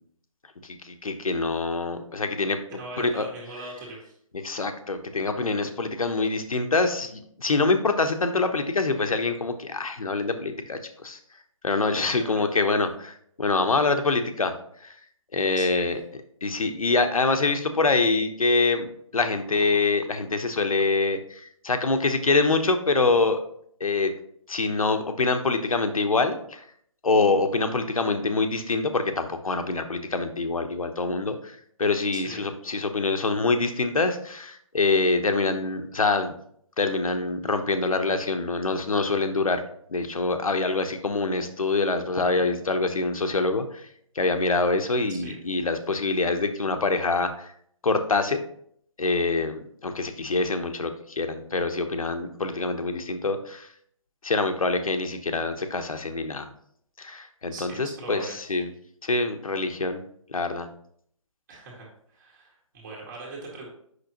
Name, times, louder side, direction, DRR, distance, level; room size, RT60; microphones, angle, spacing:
voice 1, 0.6-2.6 3.0-3.3 4.4-11.2 11.6-14.5 14.8-14.9 15.3-16.0 16.4-18.9 19.1-23.4 23.8-24.1 24.5-26.6 27.0-36.3 36.8-39.6 39.9-43.9 44.1-47.5 47.8-48.4 49.0-53.7 54.2-56.5 57.0-58.7 59.0-60.0 60.3-60.7, left 3 dB, 80° left, 7 dB, 1.0 m, -25 dB
voice 2, 2.7-4.2 15.5-15.8 32.1-32.5 45.1-45.4 57.5-58.4 61.5-63.7, right 2 dB, 35° right, -3 dB, 2.0 m, -41 dB
8.0 x 6.1 x 2.9 m, 0.66 s
figure-of-eight pair, 145°, 18 cm